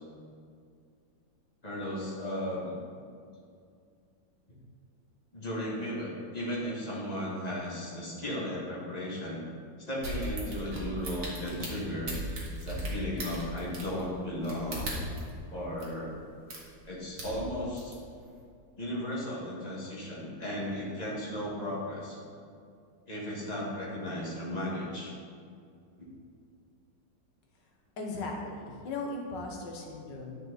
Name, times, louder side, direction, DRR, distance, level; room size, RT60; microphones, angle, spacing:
voice 1, 1.6-2.8 5.3-9.4 9.8-12.1 12.6-15.0 15.5-16.1 16.8-17.9 18.8-22.2 23.1-25.1 26.0-26.1, left 1 dB, 20° left, -6 dB, 2.1 m, -35 dB
sound 1, 10.0-15.3 15.8-15.9 16.5-16.8 17.1-17.9 18.4-18.5, right 1 dB, 45° right, 2.0 m, -37 dB
voice 2, 28.0-30.4, left 2 dB, 65° left, 0 dB, 1.9 m, -37 dB
10.5 x 6.5 x 4.1 m, 2.3 s
omnidirectional pair, 2.1 m